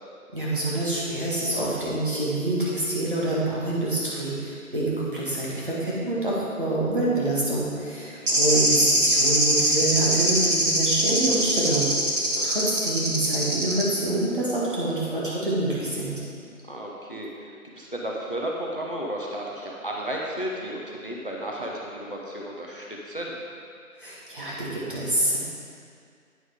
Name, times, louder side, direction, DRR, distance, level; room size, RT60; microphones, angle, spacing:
voice 1, 0.3-11.9 12.4-16.2 24.0-25.4, right 2 dB, 35° right, -7 dB, 1.7 m, -26 dB
voice 2, 8.0-8.5 12.4-12.8 16.6-23.4, right 1 dB, 40° left, -2 dB, 0.7 m, -34 dB
sound 1, 8.3-13.8, right 1 dB, 55° right, 1.8 m, -22 dB
9.1 x 6.7 x 3.5 m, 2.3 s
figure-of-eight pair, 180°, 44 cm